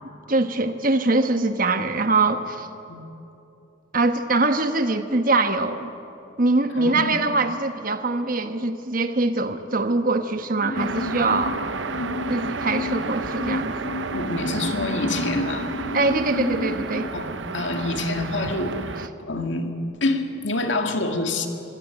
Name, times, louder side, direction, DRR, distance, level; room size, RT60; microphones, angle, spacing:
voice 1, 0.3-2.7 3.9-5.9 6.4-11.6 12.3-13.7 15.9-17.1, right 2 dB, 45° right, 8 dB, 1.2 m, -23 dB
voice 2, 6.8-7.2 14.1-15.7 17.1-17.3 17.5-18.8 19.2-19.7 20.0-21.5, left 2 dB, 70° left, 5 dB, 2.1 m, -26 dB
sound 1, 10.6-17.1, left 2 dB, 90° left, 1.6 m, -31 dB
sound 2, 10.7-19.1, right 4 dB, 70° right, 0.8 m, -32 dB
25.5 x 16.5 x 9.1 m, 2.8 s
head